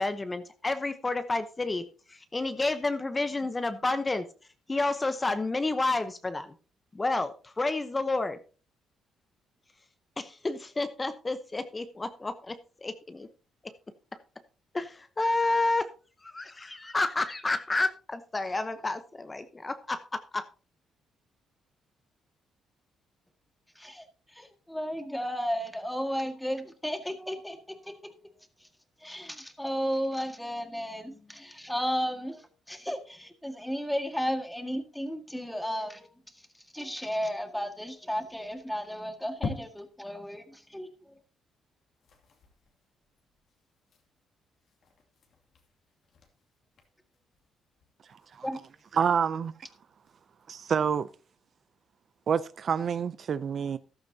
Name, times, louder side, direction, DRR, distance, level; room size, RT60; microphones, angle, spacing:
voice 1, 0.0-4.2 4.7-6.5 6.9-8.4 10.2-13.3 14.7-15.9 16.2-20.5, left 2 dB, 20° left, 0.9 m, -30 dB
voice 2, 23.8-28.1 28.6-28.7 29.0-41.2 48.4-48.6, equal, 5° left, 1.9 m, -34 dB
sound 1, 38.3-40.2 40.6-40.7 41.0-41.1 41.4-41.6 41.9-50.5, left 4 dB, 65° left, 2.5 m, -46 dB
voice 3, 49.0-49.5 50.5-51.1 52.3-53.8, right 7 dB, 55° right, 0.5 m, -27 dB
14.0 x 12.0 x 2.8 m
cardioid pair, 90°, 0 cm